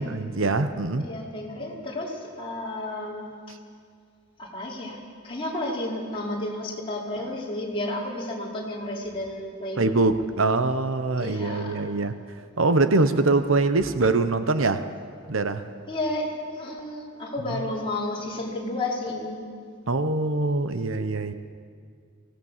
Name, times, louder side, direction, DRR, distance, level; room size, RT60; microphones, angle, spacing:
voice 1, 0.0-1.1 9.8-12.2 12.6-14.8 15.3-15.6 19.9-21.3, right 3 dB, 70° right, 1.0 m, -23 dB
voice 2, 1.0-3.3 4.4-9.8 11.2-11.8 15.9-19.4, left 1 dB, 25° left, 5.0 m, -32 dB
24.5 x 18.5 x 7.4 m
head